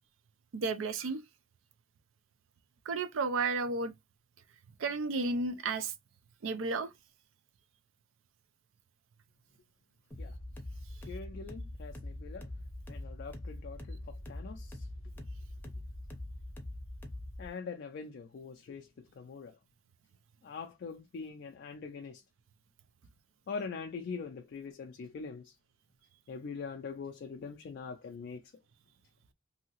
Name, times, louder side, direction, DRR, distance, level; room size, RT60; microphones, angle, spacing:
voice 1, 0.5-1.2 2.9-3.9 4.8-5.9 6.4-6.9, right 3 dB, 80° right, 0.4 m, -32 dB
sound 1, 10.1-17.5, left 1 dB, 10° left, 0.6 m, -43 dB
voice 2, 11.1-12.5 12.9-14.0 14.3-14.8 17.4-18.9 19.2-19.5 20.4-22.2 23.5-25.5 26.3-28.4, left 5 dB, 55° left, 0.3 m, -43 dB
2.7 x 2.7 x 2.8 m
head